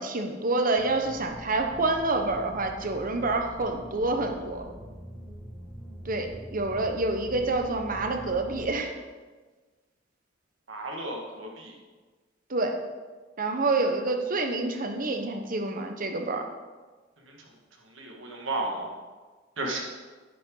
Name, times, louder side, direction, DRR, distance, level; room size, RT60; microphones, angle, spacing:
voice 1, 0.0-4.6 6.0-8.9 12.5-12.8 13.4-16.4, right 2 dB, 45° right, 4 dB, 1.1 m, -27 dB
sound 1, 0.8-8.8, equal, 15° right, 1.7 m, -44 dB
voice 2, 10.7-11.7 18.0-18.9 19.6-19.8, right 2 dB, 80° right, 0 dB, 2.0 m, -33 dB
10.0 x 10.0 x 4.0 m, 1.4 s
head